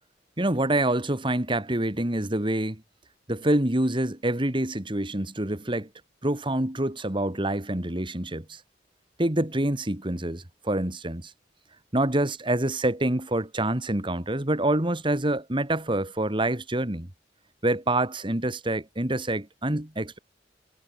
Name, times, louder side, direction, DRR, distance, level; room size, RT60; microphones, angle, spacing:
voice 1, 0.4-2.8 3.3-5.9 6.2-8.6 9.2-11.3 11.9-17.1 17.6-20.2, right 1 dB, 30° right, 2.3 m, -26 dB
head